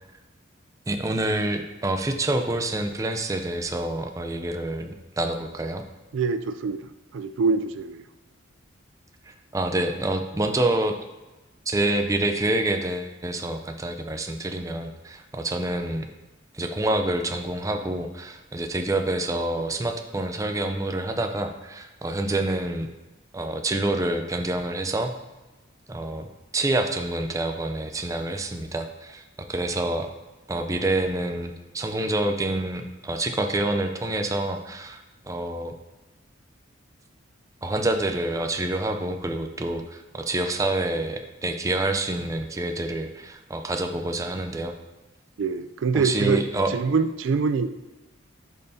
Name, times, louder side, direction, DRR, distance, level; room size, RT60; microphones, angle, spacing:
voice 1, 0.9-5.8 9.3-11.0 11.7-16.1 16.5-22.9 23.3-25.1 25.9-26.3 26.5-29.2 29.5-30.1 30.5-35.7 37.6-44.8 45.9-46.7, right 2 dB, 15° right, 5 dB, 0.5 m, -27 dB
voice 2, 6.1-8.0 45.4-46.4 46.7-47.7, right 5 dB, 70° right, 11 dB, 0.4 m, -25 dB
10.5 x 5.5 x 2.7 m, 1.1 s
head